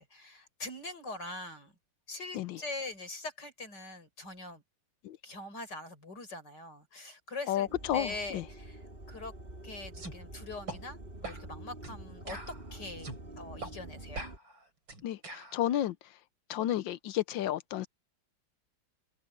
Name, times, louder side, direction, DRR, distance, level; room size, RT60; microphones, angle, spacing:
voice 1, 0.0-1.7 2.1-4.6 5.2-7.7 7.9-9.3 9.6-13.1 13.4-14.3, left 2 dB, 60° left, 6.5 m, -43 dB
voice 2, 7.5-8.4 15.0-16.0 16.5-17.9, left 12 dB, 75° left, 1.4 m, -32 dB
sound 1, 7.7-14.4, right 1 dB, 25° right, 3.9 m, -47 dB
sound 2, 9.9-10.2 10.7-10.8 11.2-11.4 11.8-12.0 12.3-13.2 13.6-13.7 14.1-15.6, right 2 dB, 75° right, 5.9 m, -42 dB
open air
omnidirectional pair, 2.1 m